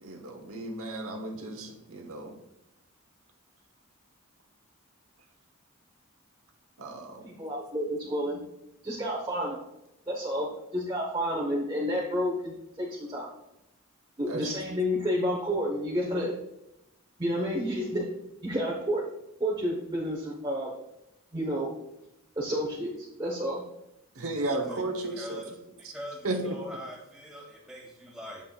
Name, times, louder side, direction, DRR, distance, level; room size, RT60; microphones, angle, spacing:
voice 1, 0.0-2.3 6.8-7.2 14.3-14.4 24.2-25.4 26.2-26.6, right 2 dB, 80° right, 4 dB, 1.1 m, -34 dB
voice 2, 7.2-8.4 8.8-9.6 10.1-13.3 14.2-16.3 17.2-18.1 18.4-19.0 19.4-20.7 21.3-21.7 22.4-23.6, equal, 20° right, -4 dB, 1.0 m, -30 dB
voice 3, 25.2-25.5 25.9-26.2 26.4-28.4, equal, 5° right, -3 dB, 2.1 m, -42 dB
8.6 x 7.0 x 2.4 m, 0.86 s
head